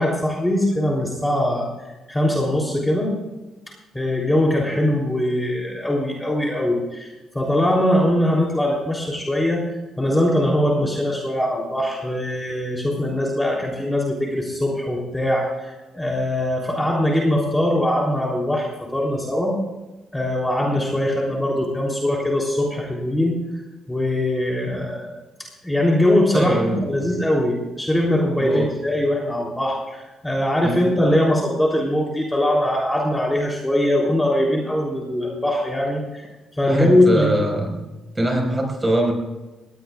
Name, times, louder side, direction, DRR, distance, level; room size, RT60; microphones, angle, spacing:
voice 1, 0.0-1.7 2.1-3.1 3.9-9.7 10.0-19.5 20.1-23.4 23.9-25.1 25.6-36.2 36.6-37.3, left 1 dB, 10° left, -2 dB, 3.4 m, -21 dB
voice 2, 26.3-26.8 28.4-28.7 30.6-30.9 36.6-37.8 38.2-39.1, right 1 dB, 15° right, 2 dB, 5.1 m, -22 dB
19.0 x 17.5 x 2.4 m, 1.1 s
cardioid pair, 90°, 0 cm